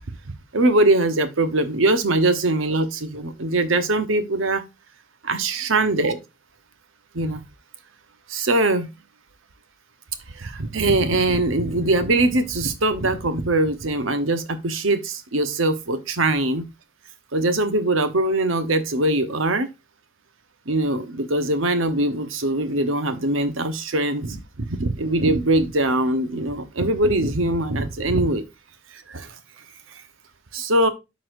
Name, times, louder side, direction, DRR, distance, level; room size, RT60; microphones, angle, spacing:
voice 1, 0.5-4.6 5.3-6.2 7.1-7.4 8.3-8.9 10.3-16.6 17.3-19.7 20.7-28.4 28.9-29.3 30.5-30.9, right 2 dB, 75° right, 1.0 m, -22 dB
12.5 x 4.2 x 2.6 m
head